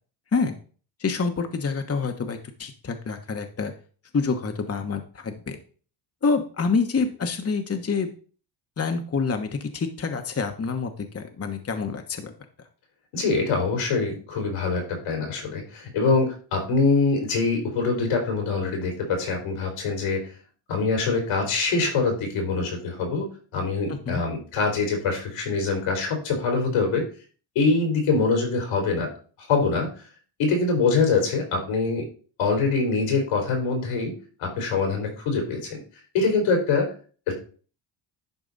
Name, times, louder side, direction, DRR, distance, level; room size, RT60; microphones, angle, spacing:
voice 1, 1.0-3.7 4.1-5.6 6.2-8.1 8.8-12.3 23.9-24.2, left 4 dB, 30° left, 6 dB, 1.2 m, -27 dB
voice 2, 13.1-20.3 20.7-27.1 27.6-29.1 29.4-29.9 30.4-32.1 32.4-34.1 34.4-35.8 36.1-36.9 37.3-37.4, left 4 dB, 85° left, 2 dB, 3.9 m, -24 dB
11.0 x 4.7 x 4.0 m, 0.40 s
cardioid pair, 75°, 50 cm